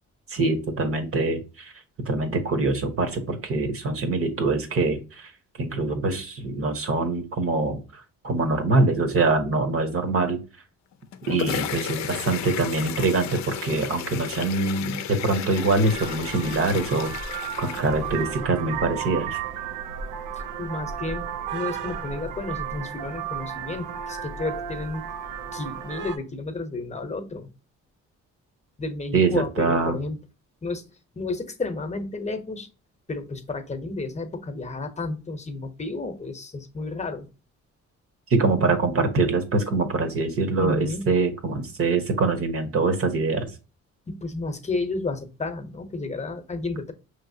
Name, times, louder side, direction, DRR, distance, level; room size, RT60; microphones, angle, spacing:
voice 1, 0.3-1.7 2.0-5.3 5.6-10.4 11.3-17.1 17.6-19.4 29.1-30.0 38.3-43.5, right 3 dB, 50° right, 7 dB, 1.1 m, -24 dB
sound 1, 10.9-18.4, left 10 dB, 65° left, 0.5 m, -34 dB
Vehicle horn car horn honking, 15.5-26.2, right 8 dB, 90° right, 0.6 m, -34 dB
voice 2, 20.3-21.2 21.5-25.0 25.5-27.5 28.8-30.2 30.6-30.8 31.1-32.7 33.1-37.3 40.6-41.1 44.1-46.9, left 3 dB, 25° left, 8 dB, 0.9 m, -31 dB
5.3 x 3.2 x 2.7 m, 0.32 s
cardioid pair, 90°, 30 cm